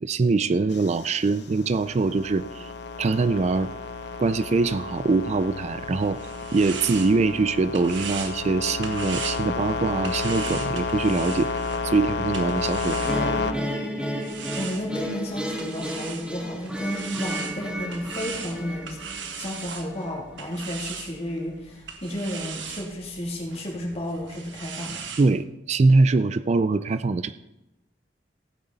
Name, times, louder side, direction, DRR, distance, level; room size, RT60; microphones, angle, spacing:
voice 1, 0.0-2.7 3.0-3.7 4.2-6.2 6.5-11.5 11.8-13.3 25.2-27.3, right 3 dB, 35° right, 13 dB, 0.4 m, -23 dB
sound 1, 0.7-13.5, left 4 dB, 65° left, 0.9 m, -31 dB
sound 2, 5.8-13.6 14.2-25.3, right 7 dB, 80° right, 1.3 m, -39 dB
sound 3, 13.1-20.2, equal, 5° right, 1.2 m, -32 dB
voice 2, 14.6-19.0 19.3-25.0, left 1 dB, 35° left, -2 dB, 2.9 m, -32 dB
16.0 x 8.9 x 4.1 m, 0.95 s
head